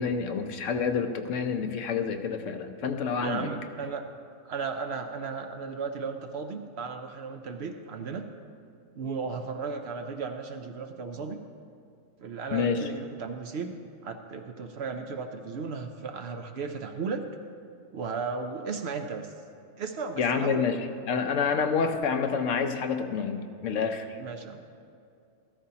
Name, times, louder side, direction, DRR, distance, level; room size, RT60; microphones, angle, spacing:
voice 1, 0.0-3.5 12.5-12.8 20.2-24.2, left 5 dB, 70° left, 7 dB, 1.0 m, -28 dB
voice 2, 3.2-4.0 4.5-8.3 8.9-11.4 12.2-13.7 14.0-17.2 17.9-19.3 19.8-20.6 24.2-24.7, right 5 dB, 60° right, 6 dB, 0.8 m, -35 dB
13.5 x 13.5 x 2.8 m, 2.5 s
omnidirectional pair, 1.4 m